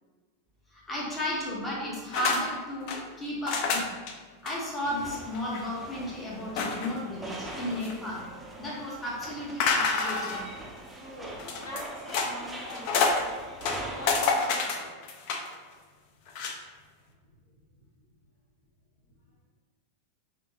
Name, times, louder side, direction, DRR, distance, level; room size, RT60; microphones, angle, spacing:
voice 1, 0.7-3.9 4.4-8.2 8.6-10.4, left 1 dB, 15° left, -5 dB, 0.9 m, -34 dB
sound 1, 2.1-2.4 2.7-3.0 3.5-4.1 4.5-4.6 4.9-5.0 5.3-5.6 6.6-7.0 7.5-8.2 9.6-10.5 11.4-12.3 12.7-13.2 13.6-15.5 16.3-16.6, left 4 dB, 45° left, 0.5 m, -28 dB
sound 2, 4.8-14.3, right 1 dB, 5° right, 0.5 m, -43 dB
voice 2, 11.0-13.3 13.9-14.9, equal, 60° left, -3 dB, 1.0 m, -43 dB
5.6 x 2.8 x 2.6 m, 1.4 s
figure-of-eight pair, 90°, 0 cm